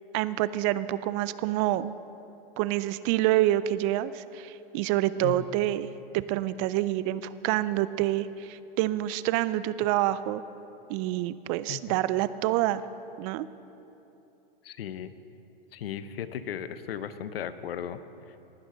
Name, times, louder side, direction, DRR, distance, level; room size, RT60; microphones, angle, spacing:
voice 1, 0.1-1.9 2.6-10.4 10.9-12.8 13.2-13.5, right 14 dB, 35° right, 16 dB, 0.4 m, -27 dB
voice 2, 14.6-15.1 15.7-18.0, left 9 dB, 80° left, 13 dB, 0.8 m, -36 dB
19.0 x 11.5 x 3.9 m, 2.9 s
hypercardioid pair, 120°, 29 cm